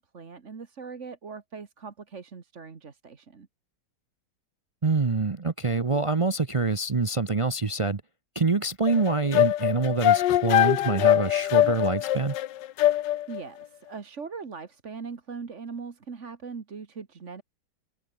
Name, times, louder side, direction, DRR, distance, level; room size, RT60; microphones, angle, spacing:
voice 1, 0.0-3.5 12.9-17.4, right 5 dB, 40° right, 1.9 m, -40 dB
voice 2, 4.8-8.0 8.3-12.4, right 3 dB, 60° right, 0.3 m, -25 dB
sound 1, 8.9-13.4, left 13 dB, 85° left, 1.4 m, -22 dB
omnidirectional pair, 1.9 m